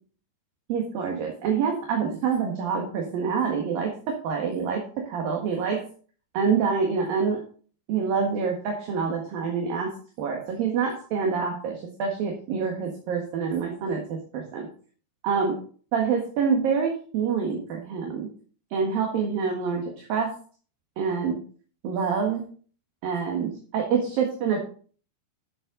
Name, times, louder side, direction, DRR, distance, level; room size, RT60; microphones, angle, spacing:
voice 1, 0.7-5.8 6.3-7.4 7.9-9.9 10.2-14.7 15.2-15.5 15.9-18.3 18.7-20.3 21.0-21.4 21.8-22.4 23.0-24.6, right 6 dB, 60° right, 0 dB, 3.1 m, -26 dB
13.5 x 7.7 x 3.9 m, 0.43 s
omnidirectional pair, 5.2 m